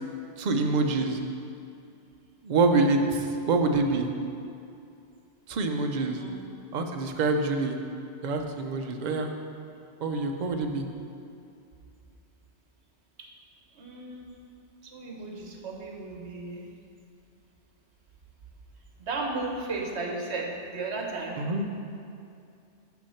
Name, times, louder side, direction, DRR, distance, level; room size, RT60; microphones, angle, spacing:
voice 1, 0.4-1.2 2.4-4.1 5.5-6.2 6.7-7.8 8.2-9.3 10.0-10.9 21.4-21.6, right 3 dB, 50° right, 4 dB, 0.6 m, -26 dB
voice 2, 13.7-14.3 14.8-16.6 19.0-21.4, right 3 dB, 65° right, 0 dB, 1.2 m, -35 dB
5.9 x 5.7 x 5.7 m, 2.5 s
omnidirectional pair, 1.2 m